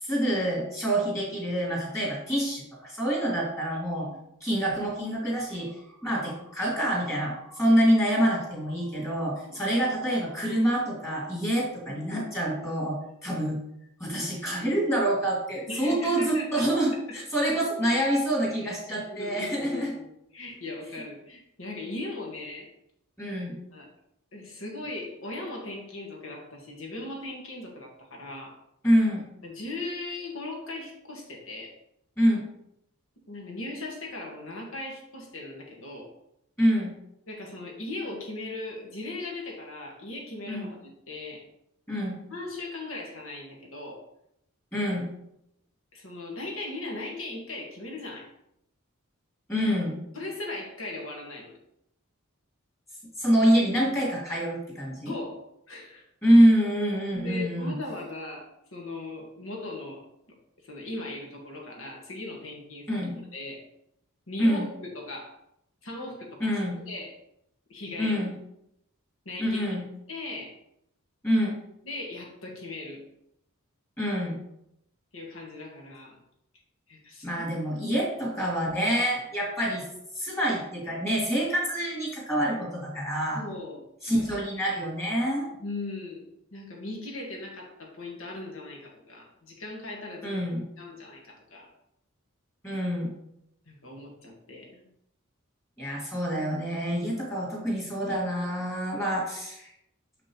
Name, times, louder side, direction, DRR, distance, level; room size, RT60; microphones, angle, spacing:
voice 1, 0.0-4.1 4.4-13.6 14.0-19.9 23.2-23.6 28.8-29.2 32.2-32.5 36.6-36.9 40.5-40.7 41.9-42.2 44.7-45.1 49.5-50.0 53.2-55.1 56.2-57.7 62.9-63.2 64.4-64.7 66.4-66.8 68.0-68.3 69.4-69.8 71.2-71.6 74.0-74.4 77.2-79.8 80.1-83.4 84.0-85.5 90.2-90.7 92.6-93.2 95.8-99.7, equal, 15° left, -4 dB, 2.5 m, -26 dB
voice 2, 3.7-4.2 9.0-9.1 9.4-9.6 11.9-12.3 15.7-16.7 17.1-17.2 19.1-22.7 23.7-23.9 24.3-28.5 29.4-31.7 33.3-36.1 37.3-41.4 42.3-44.0 45.9-48.3 50.1-51.6 55.0-56.0 57.1-58.4 58.7-60.0 60.6-62.9 63.3-63.6 64.3-65.3 65.8-66.6 66.9-67.1 67.7-68.2 69.2-69.6 70.1-70.5 71.8-73.0 75.1-76.2 76.9-77.5 83.3-83.9 85.6-86.2 86.5-90.4 90.8-91.7 93.7-94.9, left 2 dB, 65° left, 0 dB, 1.7 m, -38 dB
6.6 x 6.0 x 3.1 m, 0.78 s
head